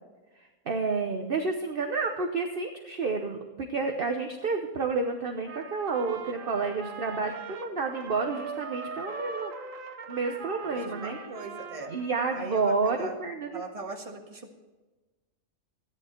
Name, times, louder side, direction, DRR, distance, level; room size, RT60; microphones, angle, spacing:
voice 1, 0.4-9.5 10.1-11.2 11.9-13.6, right 4 dB, 45° right, 4 dB, 1.1 m, -30 dB
Trumpet, 5.4-12.8, right 5 dB, 85° right, 1.5 m, -41 dB
voice 2, 10.7-11.9 12.3-13.2 13.5-14.5, right 3 dB, 25° right, 1 dB, 1.6 m, -39 dB
14.0 x 10.5 x 4.4 m, 1.2 s
omnidirectional pair, 1.4 m